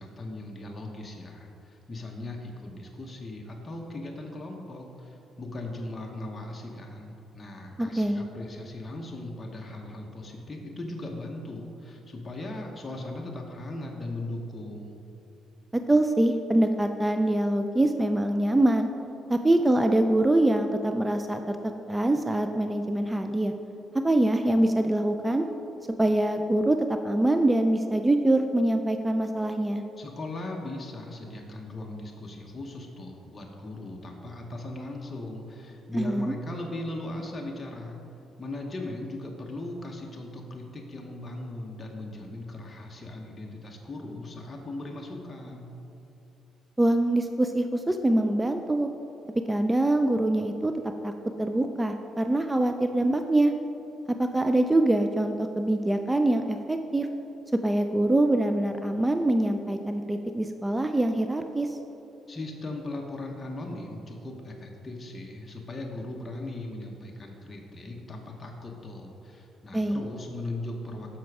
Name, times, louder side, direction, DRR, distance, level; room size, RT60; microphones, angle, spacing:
voice 1, 0.0-15.0 30.0-38.0 38.4-45.7 62.3-71.2, left 2 dB, 30° left, 0 dB, 0.9 m, -38 dB
voice 2, 7.8-8.2 15.7-18.9 19.3-21.6 21.9-23.5 23.9-25.5 26.0-29.8 35.9-36.3 46.8-48.9 49.5-50.7 51.0-51.1 51.4-53.5 54.1-57.1 57.6-61.8 69.7-70.0, right 1 dB, 15° right, 6 dB, 0.3 m, -24 dB
7.5 x 5.9 x 4.7 m, 2.9 s
cardioid pair, 90°, 0 cm